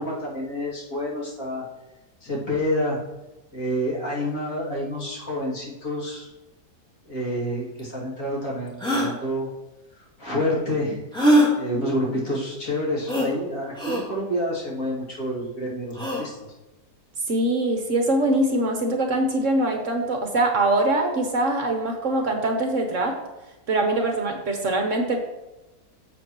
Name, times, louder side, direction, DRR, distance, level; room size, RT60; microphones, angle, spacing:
voice 1, 0.0-1.6 2.2-3.0 3.5-6.3 7.0-9.5 10.2-11.1 11.6-16.3, equal, 55° left, -5 dB, 2.9 m, -28 dB
sound 1, 7.8-7.9 8.8-9.1 11.1-11.5 13.1-13.3 13.8-14.0 15.9-16.2, equal, 5° left, 2.3 m, -20 dB
voice 2, 17.3-23.2 23.7-25.2, right 2 dB, 55° right, 3 dB, 1.3 m, -23 dB
11.0 x 7.3 x 3.0 m, 1.0 s
omnidirectional pair, 1.7 m